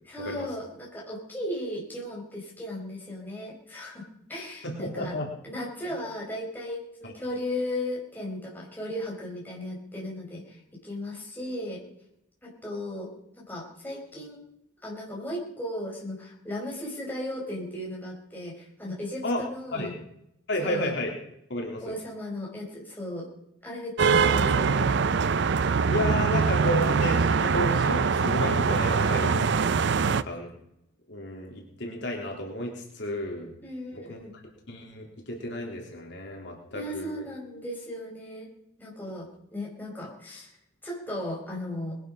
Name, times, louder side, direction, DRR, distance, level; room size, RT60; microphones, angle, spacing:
voice 1, 0.1-5.1 5.4-11.8 12.4-13.1 13.4-14.4 14.8-19.9 20.6-20.9 21.8-23.3 23.6-25.0 33.6-34.4 36.7-38.5 38.8-40.5 40.8-42.0, left 1 dB, 10° left, -3 dB, 4.9 m, -36 dB
voice 2, 4.6-5.3 7.0-7.1 19.2-19.4 19.7-19.9 20.5-21.1 21.5-21.9 25.9-29.5 30.0-30.5 31.1-33.5 33.9-34.2 34.7-37.2, left 1 dB, 60° left, 0 dB, 3.0 m, -32 dB
sound 1, 24.0-30.2, right 5 dB, 55° right, 0.5 m, -23 dB
20.5 x 11.5 x 5.4 m, 0.77 s
head